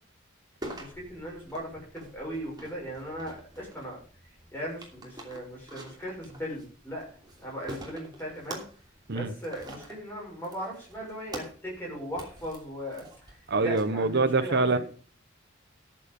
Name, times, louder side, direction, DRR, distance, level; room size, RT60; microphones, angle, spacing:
sound 1, 0.6-13.8, right 1 dB, 20° right, 2.9 m, -46 dB
voice 1, 0.8-4.0 4.5-7.1 7.4-8.6 9.1-13.0 13.6-14.8, equal, 10° left, 6.4 m, -38 dB
voice 2, 13.5-14.8, right 3 dB, 55° right, 0.9 m, -25 dB
13.5 x 7.7 x 5.4 m
head